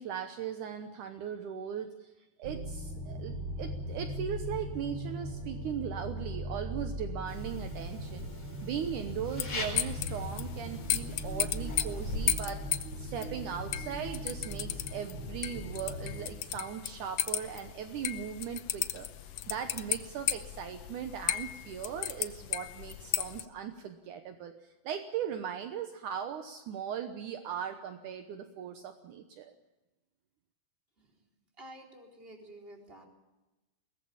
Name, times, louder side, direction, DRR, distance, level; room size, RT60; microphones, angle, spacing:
voice 1, 0.0-2.1 2.4-29.5, right 8 dB, 70° right, 7 dB, 2.4 m, -39 dB
sound 1, 2.4-16.3, equal, 45° right, 3.9 m, -39 dB
sound 2, 7.3-12.3, left 2 dB, 45° left, 5.8 m, -41 dB
sound 3, 9.4-23.4, left 11 dB, 75° left, 1.5 m, -36 dB
voice 2, 31.6-33.0, right 1 dB, 15° right, 1 dB, 4.1 m, -50 dB
22.0 x 19.0 x 7.2 m, 1.1 s
omnidirectional pair, 3.9 m